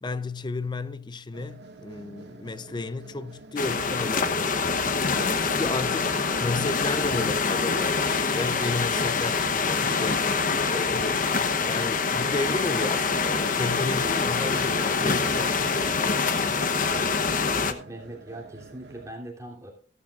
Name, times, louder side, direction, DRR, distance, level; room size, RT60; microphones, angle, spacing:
voice 1, 0.0-16.7, left 3 dB, 25° left, 0.5 m, -33 dB
sound 1, 1.3-19.1, right 3 dB, 75° right, 1.7 m, -47 dB
sound 2, 3.6-17.7, left 4 dB, 50° left, 0.9 m, -25 dB
voice 2, 17.5-19.7, right 1 dB, 20° right, 3.0 m, -40 dB
15.5 x 13.0 x 2.5 m
head